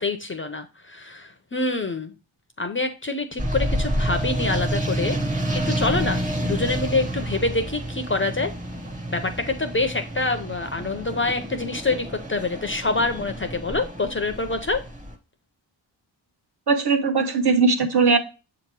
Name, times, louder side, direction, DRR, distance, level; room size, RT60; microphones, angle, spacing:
voice 1, 0.0-2.1 2.6-8.5 9.1-14.8, left 3 dB, 25° left, 0.5 m, -26 dB
sound 1, 3.4-15.2, right 1 dB, 15° right, 0.8 m, -29 dB
voice 2, 16.7-18.2, right 4 dB, 55° right, 1.1 m, -19 dB
7.3 x 2.9 x 4.5 m
wide cardioid pair, 175°, 46 cm